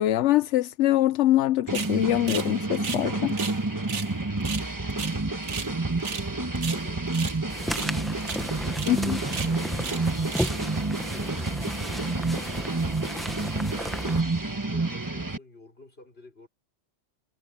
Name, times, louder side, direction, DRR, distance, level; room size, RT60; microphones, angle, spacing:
voice 1, 0.0-3.4 8.9-9.0, left 13 dB, 85° left, 1.0 m, -23 dB
sound 1, 1.7-15.4, right 2 dB, 20° right, 1.1 m, -29 dB
sound 2, 1.7-1.9 2.3-3.6 3.9-4.1 4.4-5.7 6.0-6.3 6.5-7.4 7.7-8.4 8.7-8.9 9.3-10.0 10.3-10.6, right 5 dB, 90° right, 1.7 m, -34 dB
voice 2, 4.4-4.9 6.1-7.3 8.6-11.6 13.6-14.3 14.6-16.5, left 1 dB, 60° left, 6.1 m, -49 dB
sound 3, 7.5-14.2, equal, ahead, 0.9 m, -34 dB
omnidirectional pair, 1.2 m